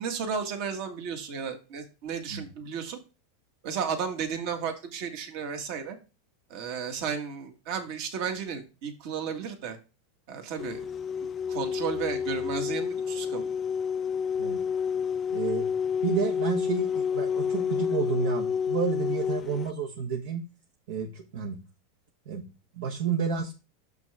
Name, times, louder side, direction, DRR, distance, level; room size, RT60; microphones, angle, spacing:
voice 1, 0.0-3.0 3.6-6.0 6.5-9.8 10.3-10.9 11.5-13.5, right 6 dB, 55° right, 5 dB, 1.8 m, -33 dB
sound 1, 10.6-19.7, left 7 dB, 25° left, 0.4 m, -29 dB
voice 2, 15.3-15.7 16.0-20.4 20.9-21.6 22.3-22.5 22.7-23.5, right 6 dB, 75° right, 2 dB, 1.3 m, -30 dB
6.7 x 5.9 x 3.5 m, 0.29 s
supercardioid pair, 140°, 0 cm